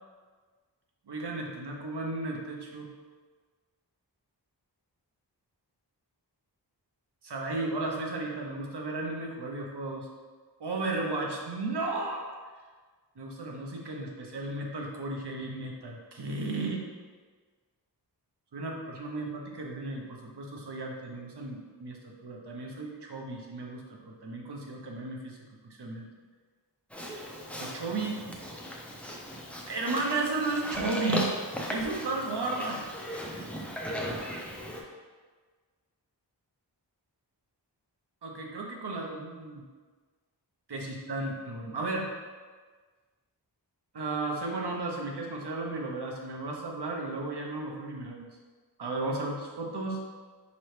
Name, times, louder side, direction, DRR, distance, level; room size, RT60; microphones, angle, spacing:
voice 1, 1.1-2.9 7.2-10.1 10.6-12.3 13.2-16.8 18.5-25.4 25.6-26.1 27.6-28.2 29.7-31.3 31.7-32.9 38.2-39.7 40.7-42.1 43.9-48.3 48.8-50.0, right 2 dB, 70° right, 0 dB, 0.8 m, -34 dB
Livestock farm animals working animals, 26.9-34.8, equal, 5° left, 0.6 m, -37 dB
5.5 x 3.0 x 3.2 m, 1.5 s
wide cardioid pair, 65°, 42 cm